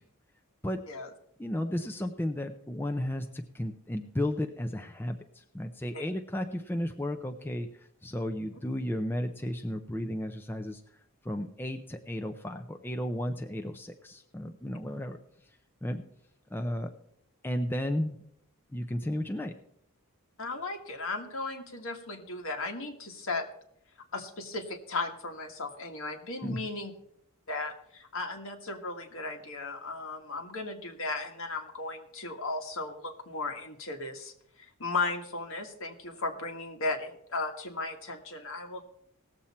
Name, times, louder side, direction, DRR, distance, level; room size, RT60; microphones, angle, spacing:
voice 1, 1.4-7.7 8.0-10.8 11.2-15.2 15.8-16.0 16.5-16.9 17.4-18.2 18.7-19.5 26.4-26.6, left 1 dB, 10° left, 4 dB, 0.6 m, -33 dB
voice 2, 20.4-23.5 24.1-26.9 27.5-34.3 34.6-38.9, left 3 dB, 60° left, 3 dB, 1.7 m, -36 dB
18.5 x 7.3 x 4.3 m, 0.73 s
head